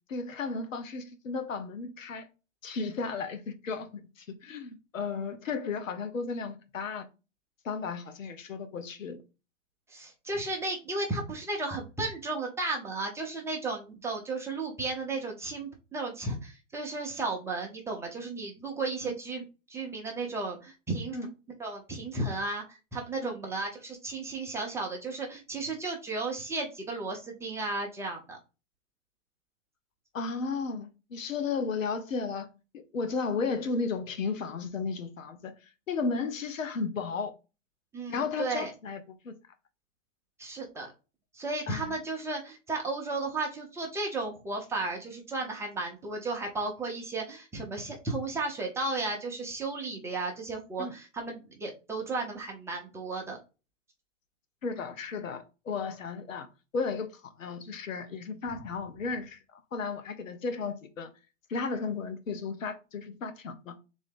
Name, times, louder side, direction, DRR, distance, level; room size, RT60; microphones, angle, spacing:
voice 1, 0.1-2.3 2.6-7.1 7.6-9.2 19.0-19.1 21.1-21.3 23.2-23.3 30.1-32.5 32.7-35.5 35.9-37.3 38.1-39.0 39.2-39.3 41.7-41.9 50.8-50.9 54.6-56.5 56.7-61.1 61.5-63.8, left 4 dB, 85° left, 0.9 m, -34 dB
voice 2, 9.9-19.4 19.7-21.2 21.6-28.4 37.9-38.7 40.4-40.9 41.3-53.4, right 3 dB, 5° right, 0.5 m, -34 dB
3.7 x 2.7 x 3.5 m
hypercardioid pair, 130°, 38 cm